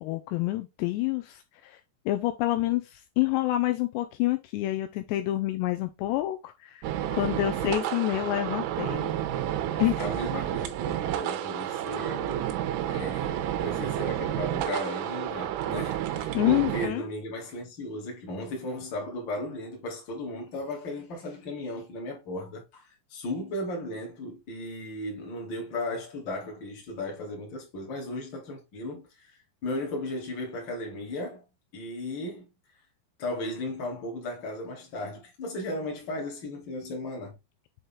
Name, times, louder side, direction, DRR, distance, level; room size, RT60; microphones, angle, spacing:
voice 1, 0.0-1.8 2.1-6.8 7.1-9.1 9.8-10.0 16.3-17.1, left 16 dB, 90° left, 2.5 m, -28 dB
sound 1, 6.8-16.9, right 11 dB, 85° right, 3.3 m, -30 dB
voice 2, 10.0-29.3 29.6-31.4 31.7-32.5 33.2-37.3, left 1 dB, 35° left, 2.1 m, -36 dB
7.8 x 4.0 x 3.6 m
omnidirectional pair, 5.5 m